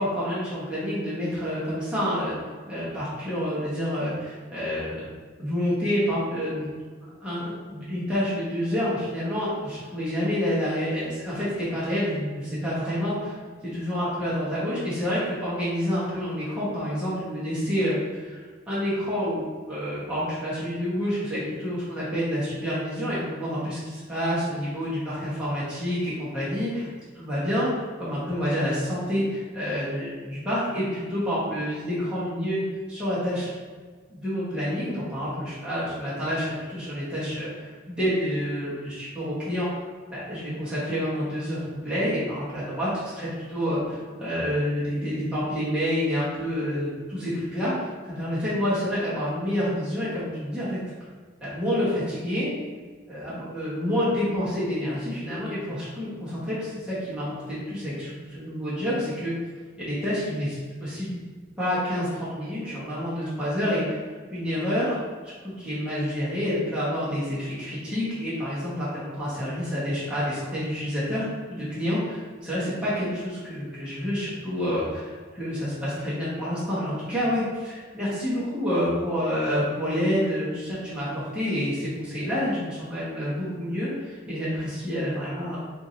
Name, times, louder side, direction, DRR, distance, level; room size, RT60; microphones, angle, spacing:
voice 1, 0.0-2.4 2.7-5.1 5.4-6.7 7.0-13.3 13.7-18.4 18.7-26.9 27.1-32.6 32.9-33.5 34.1-39.7 40.1-50.8 51.4-52.5 53.1-59.3 59.8-61.2 61.6-63.9 64.3-65.0 65.2-85.6, equal, 5° right, -11 dB, 1.1 m, -28 dB
3.4 x 2.6 x 4.2 m, 1.5 s
head